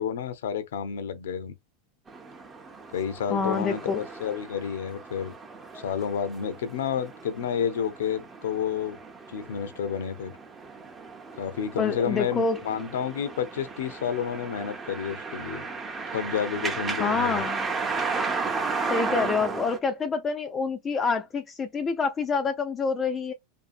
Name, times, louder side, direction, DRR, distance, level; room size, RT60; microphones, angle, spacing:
voice 1, 0.0-1.5 2.9-5.4 5.7-9.0 9.3-10.4 11.4-15.7 16.1-17.4, left 7 dB, 85° left, 0.6 m, -30 dB
sound 1, 2.1-19.8, right 4 dB, 20° right, 0.6 m, -35 dB
voice 2, 3.3-4.0 11.8-12.6 17.0-17.7 18.9-23.3, left 5 dB, 25° left, 0.4 m, -27 dB
2.6 x 2.5 x 2.5 m
supercardioid pair, 130°, 0 cm